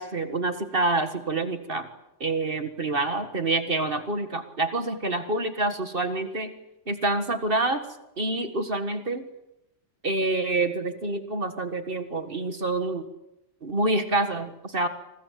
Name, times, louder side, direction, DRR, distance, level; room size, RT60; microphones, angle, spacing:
voice 1, 0.0-1.9 2.2-6.5 6.9-7.8 8.2-9.3 10.0-13.0 13.6-14.9, right 2 dB, 45° right, 8 dB, 2.0 m, -27 dB
28.0 x 25.0 x 7.6 m, 0.90 s
omnidirectional pair, 1.3 m